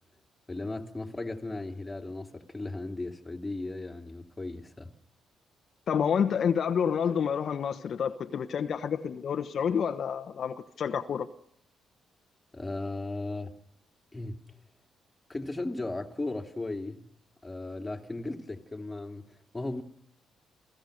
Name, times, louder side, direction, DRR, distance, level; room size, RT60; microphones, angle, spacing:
voice 1, 0.5-4.9 12.5-13.5 14.1-14.4 15.3-17.1 17.4-19.8, left 2 dB, 15° left, 2.8 m, -36 dB
voice 2, 5.9-11.3, left 7 dB, 55° left, 1.1 m, -29 dB
28.0 x 16.0 x 6.7 m
cardioid pair, 90°, 0 cm